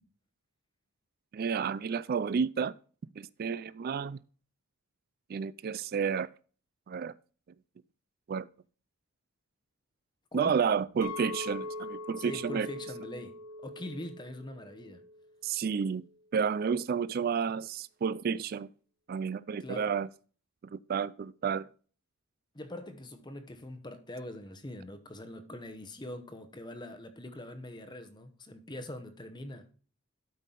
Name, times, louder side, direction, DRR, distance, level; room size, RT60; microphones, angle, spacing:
voice 1, 1.3-2.7 3.2-4.2 5.3-6.3 6.9-7.1 8.3-8.5 10.3-12.7 15.4-16.0 16.3-18.7 19.1-20.1 20.6-21.7, right 6 dB, 45° right, 0.3 m, -31 dB
voice 2, 10.3-10.6 12.2-15.0 19.6-20.0 22.5-29.7, left 1 dB, 20° left, 0.9 m, -43 dB
Chink clink, 11.0-15.4 15.7-16.1, left 2 dB, 65° left, 1.4 m, -42 dB
12.5 x 5.5 x 3.8 m
head